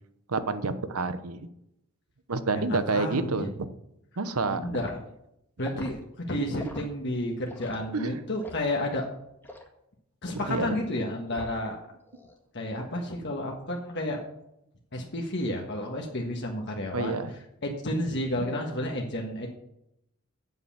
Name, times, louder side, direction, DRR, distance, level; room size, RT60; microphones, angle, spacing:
voice 1, 0.3-1.5 2.3-3.5 4.2-4.7 7.9-8.2 10.3-10.7 16.9-17.3, right 3 dB, 85° right, 11 dB, 0.9 m, -28 dB
voice 2, 2.5-3.5 4.5-5.0 5.6-9.0 10.2-11.8 12.5-14.2 14.9-17.2 17.6-19.5, left 1 dB, 55° left, 0 dB, 1.5 m, -31 dB
Liquid, 4.8-5.0 5.6-5.9 6.6-6.9 7.5-7.8 8.4-8.7 9.4-9.7 10.4-10.6 11.3-11.7 12.1-12.4, left 1 dB, 10° left, 1.8 m, -43 dB
8.1 x 7.9 x 7.4 m, 0.80 s
head